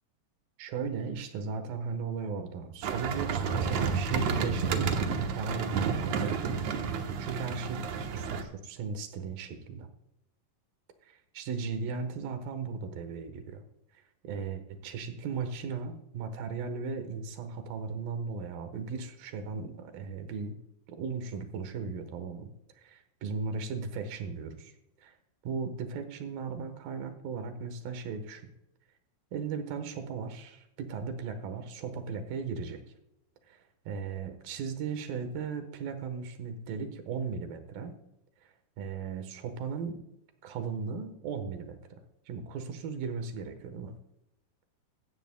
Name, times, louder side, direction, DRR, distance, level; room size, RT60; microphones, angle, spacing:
voice 1, 0.6-6.5 7.2-7.8 8.1-9.9 11.0-13.6 14.2-20.6 20.9-24.7 25.0-25.2 25.4-28.5 29.3-32.8 33.5-33.6 33.9-38.0 38.4-40.0 40.4-41.8 42.3-43.9, right 5 dB, 85° right, 8 dB, 3.1 m, -37 dB
sound 1, 2.8-8.4, right 6 dB, 65° right, 2.1 m, -31 dB
16.0 x 13.0 x 2.2 m, 0.85 s
omnidirectional pair, 4.0 m